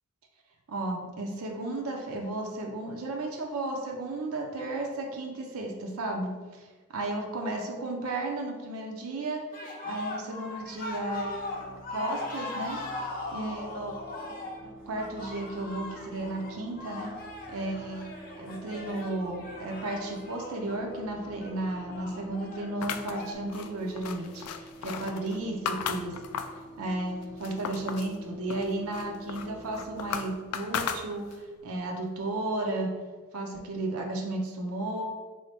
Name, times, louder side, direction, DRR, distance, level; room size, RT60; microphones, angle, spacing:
voice 1, 0.7-6.7 6.9-9.4 9.8-12.8 13.3-14.0 14.2-14.4 14.6-17.1 17.5-26.2 26.8-32.9 33.3-35.0, right 2 dB, 70° right, 1 dB, 0.5 m, -34 dB
sound 1, 9.5-23.3, left 2 dB, 40° left, 0.6 m, -40 dB
sound 2, 10.6-30.4, right 1 dB, 15° right, 0.5 m, -49 dB
sound 3, 22.8-26.7 27.1-28.1 28.5-31.5, left 7 dB, 85° left, 0.3 m, -36 dB
3.8 x 2.7 x 3.3 m, 1.4 s
head